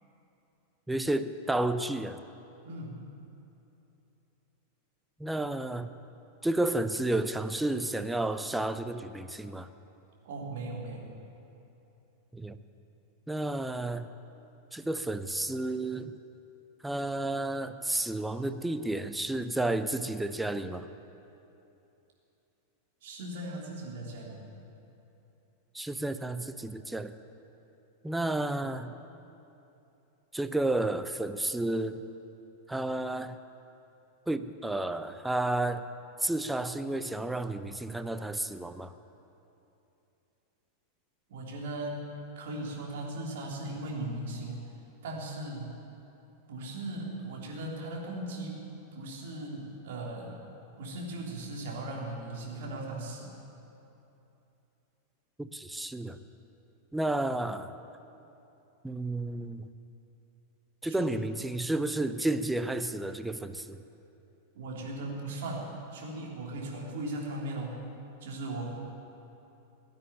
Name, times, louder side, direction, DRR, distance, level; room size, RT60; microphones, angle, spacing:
voice 1, 0.9-2.2 5.2-5.9 6.4-9.7 12.3-12.6 13.3-14.1 14.7-16.1 16.8-20.9 25.7-27.1 28.0-28.9 30.3-32.0 32.7-33.4 34.3-35.8 36.2-38.9 55.4-56.2 56.9-57.7 58.8-59.7 60.8-63.8, right 2 dB, 5° right, 10 dB, 0.6 m, -31 dB
voice 2, 2.6-3.0 10.2-11.1 23.0-24.4 41.3-44.7 45.0-45.7 46.5-48.6 48.9-50.4 50.8-53.3 60.9-61.2 64.5-67.8 68.2-68.7, right 2 dB, 55° right, -2 dB, 3.2 m, -38 dB
16.5 x 9.6 x 9.1 m, 2.9 s
figure-of-eight pair, 90°, 0 cm